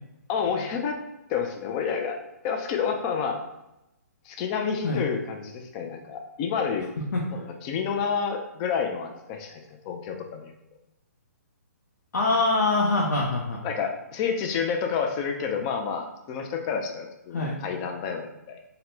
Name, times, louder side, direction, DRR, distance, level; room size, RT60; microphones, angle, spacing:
voice 1, 0.3-1.0 1.3-2.2 2.4-3.4 4.2-6.9 7.3-10.5 13.6-18.6, left 6 dB, 25° left, 4 dB, 0.3 m, -29 dB
voice 2, 12.1-13.6 17.3-17.6, left 2 dB, 80° left, -3 dB, 0.6 m, -24 dB
4.0 x 2.1 x 2.6 m, 0.90 s
hypercardioid pair, 150°, 9 cm